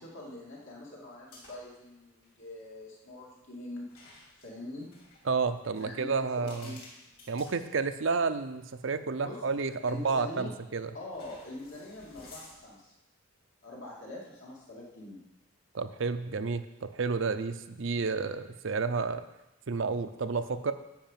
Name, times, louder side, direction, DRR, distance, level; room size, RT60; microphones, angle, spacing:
voice 1, 0.0-3.9 4.4-4.9 5.8-6.8 9.2-9.4 9.8-10.5 10.9-12.9 13.6-15.2, left 2 dB, 65° left, -3 dB, 2.7 m, -43 dB
sound 1, 1.3-1.8 2.1-2.3 3.9-8.3 8.8-8.9 10.1-10.5 11.1-12.9, left 2 dB, 45° left, 2.8 m, -55 dB
voice 2, 5.3-6.7 7.3-10.9 15.7-19.2 19.7-20.7, right 4 dB, 60° right, 10 dB, 0.6 m, -31 dB
10.5 x 5.1 x 7.4 m, 0.94 s
head